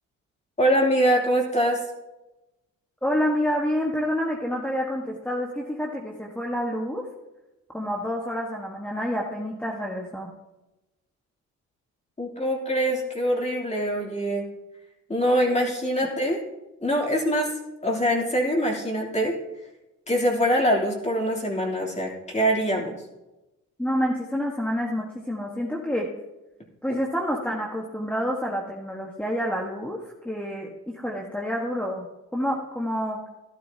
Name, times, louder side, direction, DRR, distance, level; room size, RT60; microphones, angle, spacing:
voice 1, 0.6-1.8 12.2-14.5 15.1-16.4 16.8-17.5 17.8-19.3 20.1-23.0, equal, 20° left, -1 dB, 3.3 m, -23 dB
voice 2, 3.0-7.1 7.7-10.3 23.8-26.1 26.8-32.1 32.3-33.2, equal, 5° left, -2 dB, 1.5 m, -28 dB
14.5 x 12.0 x 2.9 m, 1.0 s
cardioid pair, 90°, 30 cm